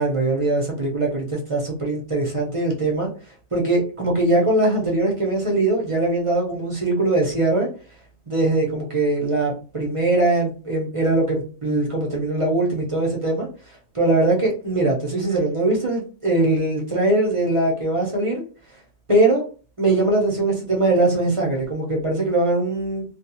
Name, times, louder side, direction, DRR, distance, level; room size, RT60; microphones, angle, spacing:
voice 1, 0.0-3.1 3.5-7.7 8.3-13.5 13.9-18.4 19.1-19.4 19.8-23.0, right 2 dB, 30° right, -2 dB, 0.7 m, -21 dB
2.4 x 2.3 x 2.8 m, 0.37 s
omnidirectional pair, 1.2 m